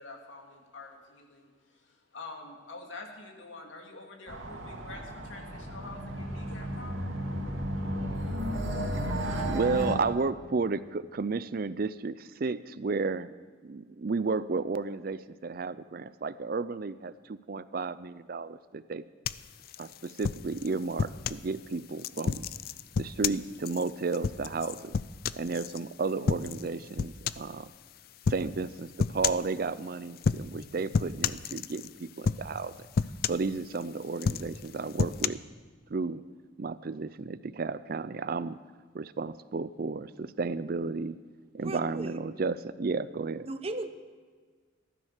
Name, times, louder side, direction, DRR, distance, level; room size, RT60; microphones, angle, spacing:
voice 1, 0.0-1.5 2.1-7.1, left 3 dB, 75° left, 1 dB, 2.6 m, -46 dB
sound 1, 4.3-10.0, equal, 85° right, 2.3 m, -33 dB
voice 2, 9.1-13.3 13.6-19.0 19.8-22.5 23.0-25.0 25.3-27.7 28.3-32.7 33.3-35.4 35.9-36.2 36.6-38.6 38.9-41.2 41.5-43.5, right 4 dB, 50° right, 16 dB, 0.5 m, -33 dB
sound 2, 19.2-21.5 22.0-25.8 26.3-26.7 27.0-27.5 28.2-28.5 29.0-29.5 30.2-30.6 30.9-31.9 32.2-32.6 32.9-33.8 34.2-35.3, left 5 dB, 50° left, 0.4 m, -31 dB
voice 3, 41.6-42.1 43.5-43.9, right 2 dB, 30° right, 9 dB, 0.8 m, -36 dB
15.5 x 13.0 x 6.5 m, 1.5 s
head